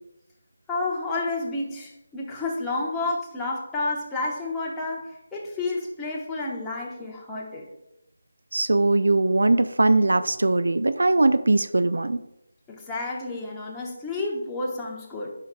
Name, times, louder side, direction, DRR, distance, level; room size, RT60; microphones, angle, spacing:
voice 1, 0.7-7.7 12.7-15.3, left 2 dB, 10° left, -4 dB, 1.2 m, -30 dB
voice 2, 8.5-12.2, right 2 dB, 70° right, 11 dB, 0.4 m, -20 dB
10.0 x 5.6 x 2.3 m, 0.84 s
figure-of-eight pair, 160°, 0 cm